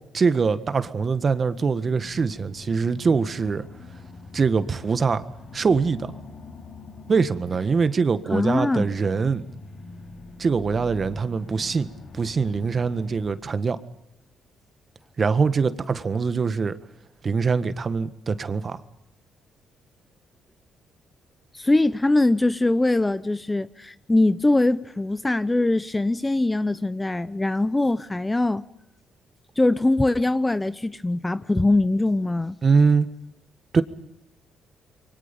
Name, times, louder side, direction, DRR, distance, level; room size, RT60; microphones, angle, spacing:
voice 1, 0.1-3.7 4.3-5.2 5.5-6.1 7.1-9.4 10.4-11.9 12.1-13.8 15.2-16.8 17.2-18.8 32.6-33.1 33.7-33.8, right 5 dB, 40° right, 1.6 m, -23 dB
sound 1, 1.5-13.3, left 3 dB, 60° left, 4.6 m, -44 dB
voice 2, 8.3-8.9 21.5-28.6 29.6-32.6, left 2 dB, 15° left, 0.8 m, -22 dB
28.0 x 23.5 x 5.4 m
cardioid pair, 90°, 0 cm